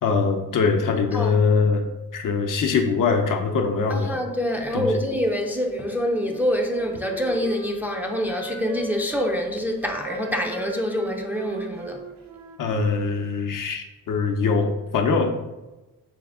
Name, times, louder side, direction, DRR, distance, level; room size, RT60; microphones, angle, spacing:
voice 1, 0.0-1.9 2.1-4.2 4.7-4.9 12.6-15.3, left 4 dB, 55° left, 0.7 m, -22 dB
voice 2, 3.9-12.1, equal, 5° right, 0.5 m, -26 dB
Wind instrument woodwind instrument, 6.2-9.3 9.8-13.0, right 4 dB, 45° right, 0.6 m, -38 dB
3.5 x 3.3 x 3.6 m
supercardioid pair, 65°, 38 cm